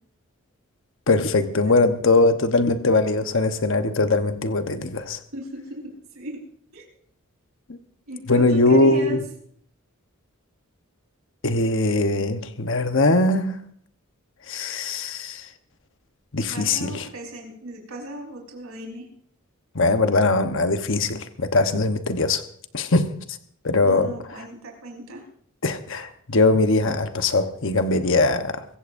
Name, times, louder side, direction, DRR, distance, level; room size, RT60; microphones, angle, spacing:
voice 1, 1.1-5.2 7.7-7.8 8.3-9.2 11.4-13.6 14.5-15.5 16.3-17.1 19.7-22.4 22.7-23.2 23.6-24.4 25.6-28.7, left 2 dB, 60° left, 1.1 m, -21 dB
voice 2, 5.3-6.4 6.7-6.9 8.1-9.2 16.5-19.1 23.8-25.2, right 1 dB, 75° right, 4.6 m, -37 dB
24.0 x 15.5 x 2.7 m
head